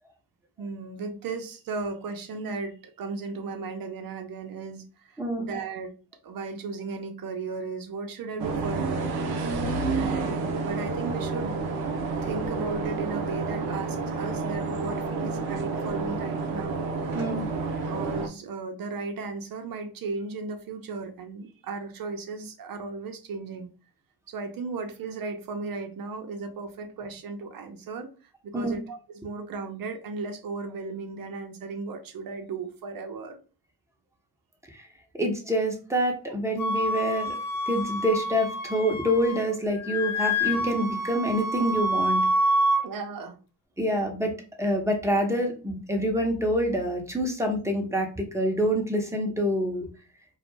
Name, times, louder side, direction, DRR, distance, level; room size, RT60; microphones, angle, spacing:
voice 1, 0.6-5.9 6.2-9.2 10.0-16.8 17.9-23.7 24.3-28.1 28.4-33.4 42.8-43.4, right 4 dB, 45° right, 6 dB, 0.7 m, -36 dB
voice 2, 5.2-5.5 17.1-17.5 28.5-28.8 34.7-34.9 35.1-37.4 37.7-42.2 43.8-44.3 44.6-49.9, equal, 5° right, 1 dB, 0.8 m, -26 dB
sound 1, 8.4-18.3, right 4 dB, 90° right, 0.6 m, -29 dB
Wind instrument woodwind instrument, 36.6-39.5 39.8-42.8, equal, 80° left, 0.6 m, -27 dB
2.3 x 2.0 x 3.1 m, 0.36 s
hypercardioid pair, 50°, 47 cm